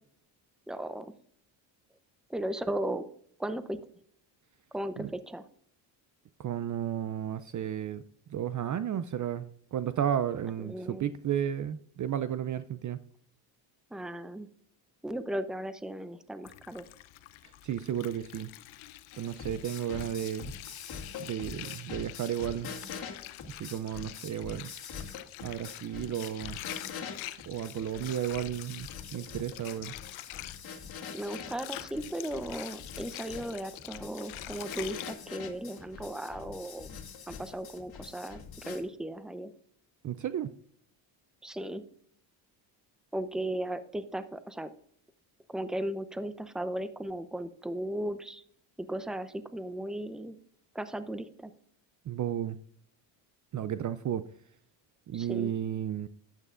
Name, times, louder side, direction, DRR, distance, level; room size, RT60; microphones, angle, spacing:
voice 1, 0.7-1.1 2.3-3.0 3.4-3.8 4.7-5.5 10.6-11.0 13.9-14.5 15.0-16.8 31.1-37.0 37.3-39.5 41.4-41.8 43.1-44.7 45.5-48.4 48.8-50.4 50.7-51.5 55.1-55.5, right 1 dB, ahead, 12 dB, 0.7 m, -36 dB
voice 2, 6.4-8.0 8.3-13.0 17.6-18.5 19.2-20.5 21.2-22.7 23.5-24.7 25.4-26.6 27.5-29.9 40.0-40.5 52.1-52.6 53.5-54.2 55.1-56.1, right 10 dB, 40° right, 14 dB, 0.5 m, -33 dB
Water, 16.4-35.1, left 16 dB, 75° left, 0.7 m, -46 dB
sound 1, 19.1-38.8, left 6 dB, 45° left, 2.2 m, -44 dB
12.0 x 9.1 x 2.5 m, 0.63 s
supercardioid pair, 75°, 49 cm